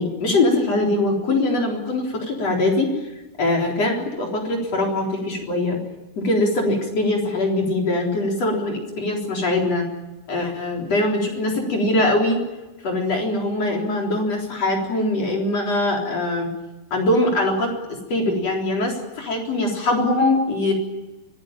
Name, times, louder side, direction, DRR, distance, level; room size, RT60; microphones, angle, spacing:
voice 1, 0.0-2.9 3.4-5.8 6.2-9.8 10.3-12.4 12.8-16.5 16.9-20.7, left 2 dB, 40° left, 0 dB, 4.7 m, -22 dB
25.0 x 17.5 x 9.0 m, 1.1 s
omnidirectional pair, 4.6 m